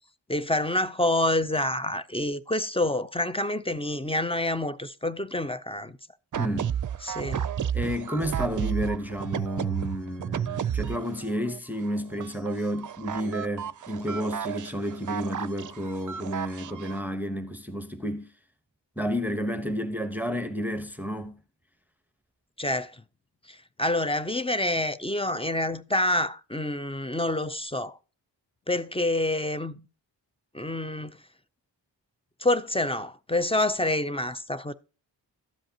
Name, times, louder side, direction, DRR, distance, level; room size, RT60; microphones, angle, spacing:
voice 1, 0.3-6.0 7.0-7.4 22.6-23.0 23.5-28.0 28.7-29.9 30.5-31.2 32.4-34.7, left 1 dB, 15° left, 0.4 m, -27 dB
sound 1, 6.3-11.6 11.8-17.0, right 9 dB, 45° right, 0.5 m, -32 dB
voice 2, 6.4-6.7 7.7-18.3 19.0-21.4, equal, 5° right, 1.0 m, -31 dB
12.5 x 7.8 x 2.8 m
cardioid pair, 65°, 45 cm